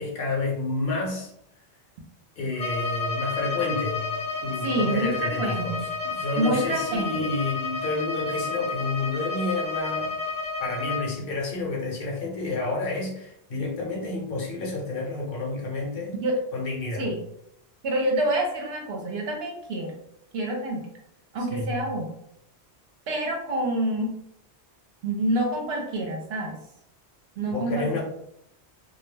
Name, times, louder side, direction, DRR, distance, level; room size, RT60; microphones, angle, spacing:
voice 1, 0.0-1.3 2.4-4.0 4.4-10.2 10.6-16.2 16.5-17.1 21.5-21.8 27.5-28.0, left 3 dB, 60° left, -1 dB, 0.8 m, -30 dB
Bowed string instrument, 2.5-11.1, left 4 dB, 25° left, 0.7 m, -31 dB
voice 2, 4.6-5.8 6.4-7.2 16.2-16.3 17.0-17.2 17.8-20.0 20.3-20.9 21.3-22.1 23.1-24.1 25.0-26.6 27.4-28.0, right 1 dB, 70° right, 0 dB, 0.8 m, -27 dB
2.2 x 2.1 x 3.2 m, 0.77 s
omnidirectional pair, 1.1 m